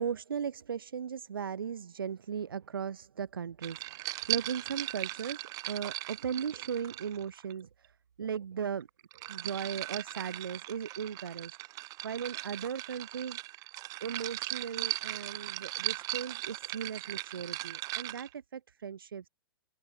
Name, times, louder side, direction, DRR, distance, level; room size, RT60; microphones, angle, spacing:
voice 1, 0.0-8.9 9.2-13.7 14.0-19.3, right 7 dB, 75° right, 0.6 m, -37 dB
sound 1, 3.6-7.5 8.8-18.3, right 19 dB, 30° right, 1.0 m, -38 dB
open air
figure-of-eight pair, 110°, 12 cm